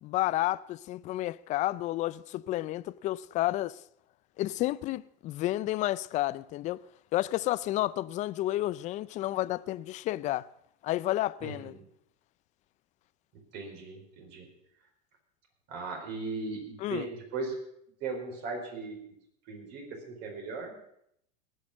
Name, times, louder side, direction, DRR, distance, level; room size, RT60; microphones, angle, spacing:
voice 1, 0.0-3.8 4.4-6.8 7.1-10.5 10.8-11.7 16.8-17.1, left 16 dB, 35° left, 0.4 m, -31 dB
voice 2, 11.4-11.8 13.5-14.5 15.7-17.5 18.0-19.0 19.5-20.8, right 3 dB, 55° right, 4.7 m, -38 dB
19.0 x 6.5 x 7.3 m
supercardioid pair, 135°, 21 cm